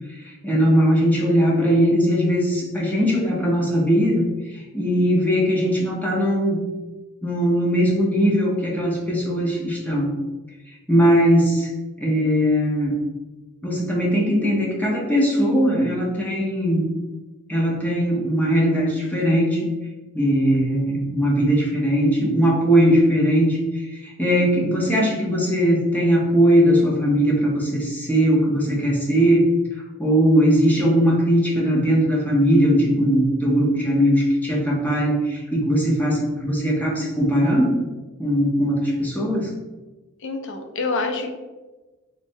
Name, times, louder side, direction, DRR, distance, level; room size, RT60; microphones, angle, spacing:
voice 1, 0.2-6.6 7.2-10.1 10.9-11.7 12.0-13.0 13.6-16.8 17.5-19.7 20.1-29.5 30.0-37.8 38.2-39.5, equal, 10° left, -4 dB, 0.7 m, -19 dB
voice 2, 40.2-41.3, left 3 dB, 60° left, 5 dB, 0.5 m, -26 dB
3.3 x 3.2 x 2.6 m, 1.2 s
head